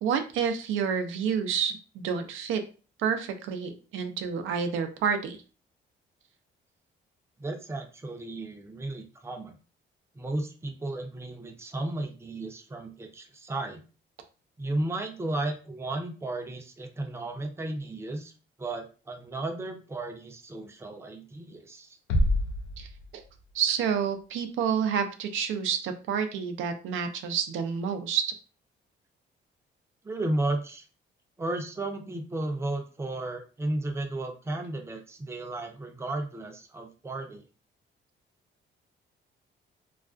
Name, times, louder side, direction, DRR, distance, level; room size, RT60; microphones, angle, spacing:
voice 1, 0.0-2.6 3.0-5.4 22.8-22.9 23.1-23.2 23.5-28.3, right 7 dB, 80° right, 7 dB, 0.5 m, -29 dB
voice 2, 7.4-9.6 10.1-13.8 14.6-18.3 18.6-22.0 30.0-30.8 31.4-37.5, right 2 dB, 15° right, 4 dB, 0.5 m, -34 dB
sound 1, 22.1-23.7, left 1 dB, 85° left, 0.4 m, -27 dB
2.3 x 2.2 x 2.4 m, 0.35 s
cardioid pair, 90°, 20 cm